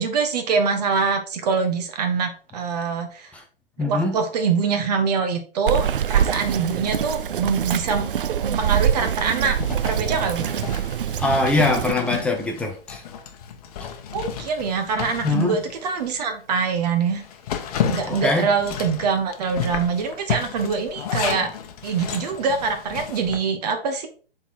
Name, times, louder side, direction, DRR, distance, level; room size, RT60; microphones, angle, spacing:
voice 1, 0.0-3.3 3.8-8.1 8.4-9.6 9.8-10.5 14.1-17.2 17.9-21.5 21.8-24.1, right 5 dB, 45° right, 7 dB, 1.2 m, -24 dB
voice 2, 3.8-4.1 11.2-13.0 15.2-15.6 18.1-18.5, left 2 dB, 5° left, 2 dB, 0.4 m, -22 dB
Bird vocalization bird call bird song, 5.7-11.9, right 9 dB, 65° right, 0.6 m, -24 dB
Zipper (clothing), 9.6-16.2 16.6-16.7 17.1-23.4, left 7 dB, 40° left, 1.0 m, -32 dB
7.1 x 3.9 x 4.3 m, 0.38 s
figure-of-eight pair, 125°, 29 cm